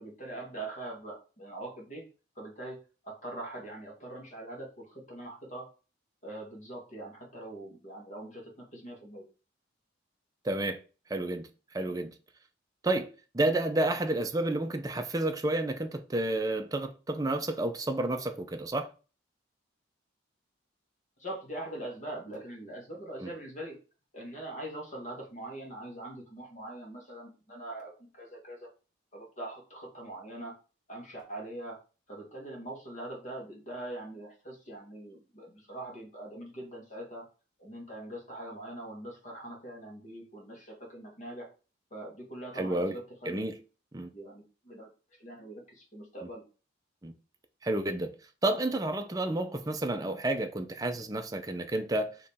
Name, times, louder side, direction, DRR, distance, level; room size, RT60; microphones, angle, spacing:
voice 1, 0.0-2.0 2.3-2.8 3.0-5.7 6.2-9.2 21.2-23.8 24.1-28.7 29.1-30.5 30.9-31.8 32.1-37.2 37.6-41.5 41.9-43.4 44.1-44.9 45.2-46.4, right 1 dB, 40° left, 1.5 m, -42 dB
voice 2, 10.4-10.8 11.1-12.1 12.8-18.9 23.2-23.3 42.6-43.0 43.2-43.6 43.9-44.1 47.0-47.1 47.6-48.1 48.4-52.2, right 2 dB, 20° right, 0.5 m, -30 dB
4.8 x 3.0 x 3.5 m
head